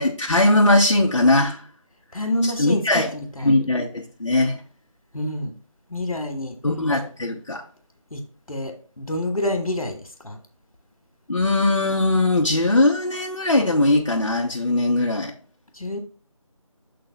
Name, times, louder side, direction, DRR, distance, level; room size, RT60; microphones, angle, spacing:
voice 1, 0.0-1.6 2.4-3.1 3.4-4.6 6.6-7.6 11.3-15.3, left 2 dB, 60° left, -2 dB, 1.1 m, -20 dB
voice 2, 2.1-3.6 5.1-5.5 5.9-6.6 6.9-7.0 8.1-8.2 8.5-10.4 15.7-16.0, left 1 dB, 80° left, 5 dB, 1.6 m, -28 dB
7.0 x 3.9 x 3.9 m, 0.38 s
figure-of-eight pair, 165°, 18 cm